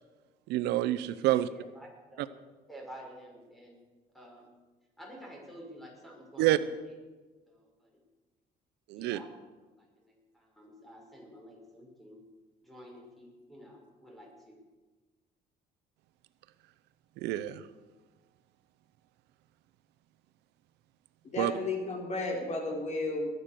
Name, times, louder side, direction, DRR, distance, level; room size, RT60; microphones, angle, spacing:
voice 1, 0.5-1.5 6.4-6.6 8.9-9.2 17.2-17.6 21.4-21.5, right 15 dB, 85° right, 15 dB, 0.7 m, -27 dB
voice 2, 1.5-2.4 2.7-3.8 4.1-4.5 5.0-6.7 7.5-8.0 8.9-9.4 9.8-12.2 12.6-14.6, equal, ahead, -1 dB, 5.8 m, -51 dB
voice 3, 21.2-23.3, left 2 dB, 45° left, 1 dB, 3.6 m, -33 dB
21.0 x 9.3 x 6.8 m, 1.3 s
cardioid pair, 110°, 17 cm